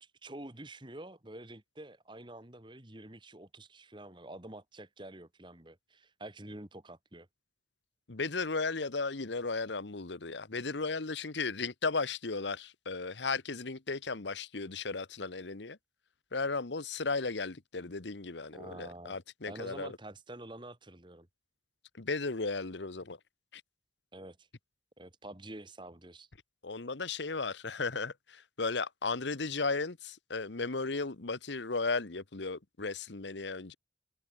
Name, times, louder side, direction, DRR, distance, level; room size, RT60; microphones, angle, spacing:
voice 1, 0.0-7.3 18.5-19.2 19.5-21.3 24.1-24.5 25.0-26.3, right 1 dB, 25° right, 2.0 m, -48 dB
voice 2, 8.1-15.8 16.3-20.0 21.9-23.2 23.5-23.6 26.6-33.7, left 4 dB, 80° left, 1.2 m, -35 dB
head